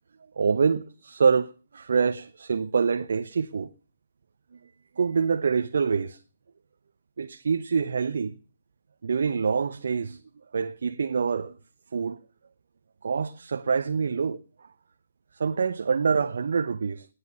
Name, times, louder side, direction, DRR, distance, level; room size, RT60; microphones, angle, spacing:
voice 1, 0.4-3.7 5.0-6.2 7.2-8.3 9.0-10.2 10.5-11.6 11.9-12.2 13.0-14.4 15.4-17.1, right 5 dB, 60° right, 0.9 m, -25 dB
18.5 x 9.8 x 6.8 m
figure-of-eight pair, 135°, 0 cm